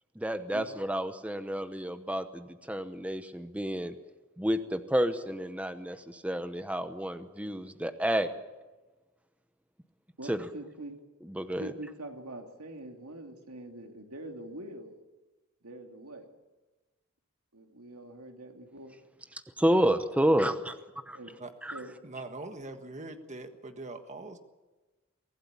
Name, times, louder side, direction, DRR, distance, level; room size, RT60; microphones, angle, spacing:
voice 1, 0.1-3.9 4.4-8.3 10.3-10.5 11.2-11.7 19.3-20.8 21.1-21.2 21.6-21.8, equal, 5° right, 9 dB, 0.9 m, -30 dB
voice 2, 10.2-11.0 11.6-15.0 15.6-16.3 17.5-19.0 21.1-21.3 21.7-21.9, right 1 dB, 90° right, 3 dB, 2.9 m, -44 dB
voice 3, 22.0-24.4, right 2 dB, 35° right, 7 dB, 1.5 m, -42 dB
24.0 x 16.5 x 8.6 m, 1.2 s
head